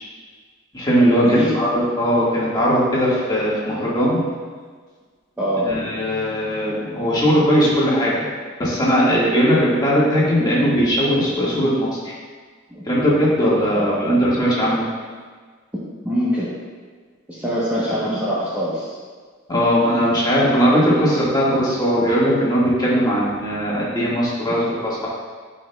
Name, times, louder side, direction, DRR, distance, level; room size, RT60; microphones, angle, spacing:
voice 1, 0.7-4.2 5.7-8.3 8.6-12.1 12.9-14.8 19.5-25.1, equal, 20° left, -7 dB, 1.9 m, -19 dB
voice 2, 1.2-1.5 5.4-5.7 12.7-12.8 13.7-14.2 16.0-16.5 17.3-18.9, equal, 10° right, -9 dB, 1.1 m, -23 dB
12.0 x 5.3 x 2.4 m, 1.5 s
head